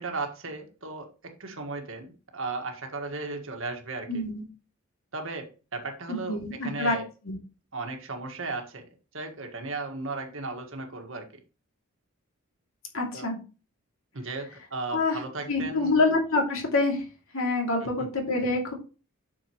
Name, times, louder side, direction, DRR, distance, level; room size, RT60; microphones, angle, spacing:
voice 1, 0.0-4.2 5.1-7.1 7.7-8.8 9.1-11.3 13.1-13.3 14.1-16.0 17.8-18.1, right 3 dB, 60° right, 3 dB, 1.7 m, -36 dB
voice 2, 4.1-4.4 6.1-7.0 7.2-7.4 12.9-13.4 14.9-15.2 15.5-17.0 17.3-18.7, left 2 dB, 70° left, 1 dB, 2.7 m, -26 dB
8.9 x 6.4 x 3.1 m, 0.32 s
head